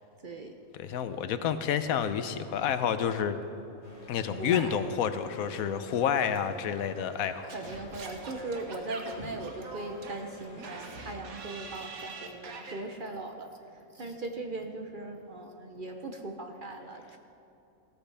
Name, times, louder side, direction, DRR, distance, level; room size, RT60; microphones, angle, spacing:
voice 1, 0.2-0.5 4.4-4.8 7.4-13.5 13.9-17.2, right 2 dB, 45° right, 4 dB, 0.7 m, -39 dB
voice 2, 0.8-3.4 4.1-7.5, left 8 dB, 80° left, 11 dB, 1.1 m, -29 dB
sound 1, 3.8-11.2, equal, 20° left, 2.4 m, -52 dB
Singing / Scratching (performance technique), 7.5-12.8, right 3 dB, 80° right, 1.6 m, -43 dB
16.0 x 13.5 x 3.4 m, 2.8 s
omnidirectional pair, 1.5 m